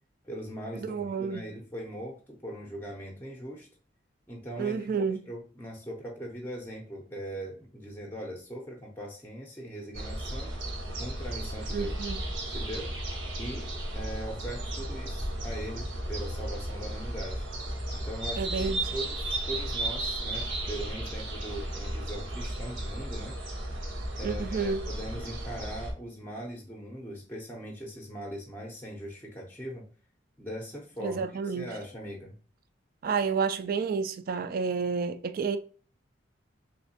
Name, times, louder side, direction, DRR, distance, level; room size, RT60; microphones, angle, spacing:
voice 1, 0.2-3.7 4.3-10.6 11.0-11.9 12.5-12.9 13.4-17.4 17.9-23.4 24.2-29.9 30.4-32.4, equal, 10° left, 0.6 m, -40 dB
voice 2, 0.8-1.5 4.6-5.2 11.7-12.2 18.4-18.9 24.2-24.9 31.0-31.7 33.0-35.6, right 5 dB, 50° right, 0.3 m, -30 dB
sound 1, 9.9-25.9, right 1 dB, 85° right, 1.1 m, -34 dB
3.4 x 3.1 x 2.7 m
head